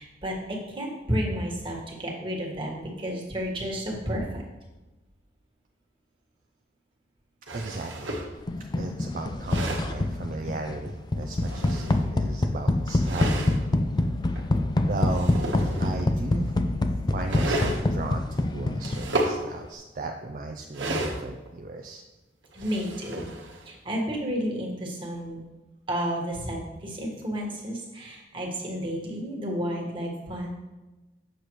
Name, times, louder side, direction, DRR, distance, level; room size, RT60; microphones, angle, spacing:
voice 1, 0.0-4.4 22.5-23.3 23.6-25.4 25.9-30.5, equal, 30° right, -2 dB, 1.5 m, -31 dB
voice 2, 7.5-8.1 8.7-13.5 14.9-15.4 15.8-16.5 17.1-22.0, right 3 dB, 50° right, 4 dB, 0.5 m, -36 dB
sound 1, 7.5-8.3 9.2-10.0 11.2-12.3 13.0-13.6 14.3-14.4 14.9-16.1 17.2-17.8 18.8-19.4 20.7-21.5 22.4-23.7, right 1 dB, 90° right, 1.2 m, -32 dB
sound 2, 8.5-19.4, left 2 dB, 25° left, 0.4 m, -26 dB
7.5 x 6.6 x 3.1 m, 1.1 s
head